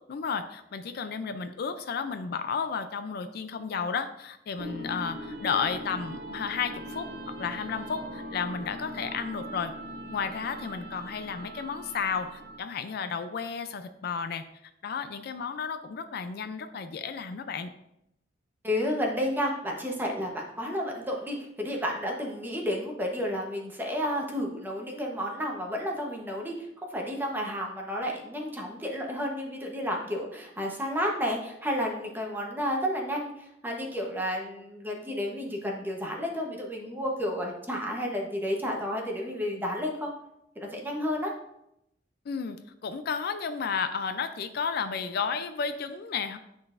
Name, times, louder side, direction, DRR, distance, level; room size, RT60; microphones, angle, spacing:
voice 1, 0.1-7.1 7.4-9.7 10.1-14.4 14.8-17.7 42.3-42.6 42.8-46.4, left 6 dB, 55° left, 10 dB, 0.4 m, -32 dB
sound 1, 4.6-12.8, equal, 60° right, 0.7 m, -40 dB
voice 2, 18.6-40.1 40.6-41.3, equal, 10° right, 0 dB, 0.9 m, -31 dB
10.0 x 3.9 x 2.5 m, 0.81 s
head